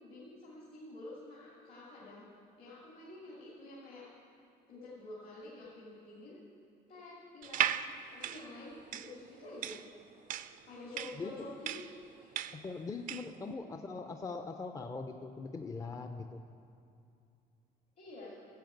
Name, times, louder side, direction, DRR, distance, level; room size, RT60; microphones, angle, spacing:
voice 1, 0.0-2.3 2.6-4.1 4.7-6.4 6.9-9.8 10.6-11.8 12.2-12.4 13.9-14.0 18.0-18.4, left 2 dB, 65° left, -6 dB, 2.5 m, -49 dB
sound 1, 7.4-13.4, right 10 dB, 50° right, 0.4 m, -37 dB
voice 2, 11.2-11.5 12.5-16.4, left 4 dB, 20° left, 6 dB, 0.5 m, -41 dB
10.5 x 7.2 x 7.9 m, 2.6 s
cardioid pair, 110°, 17 cm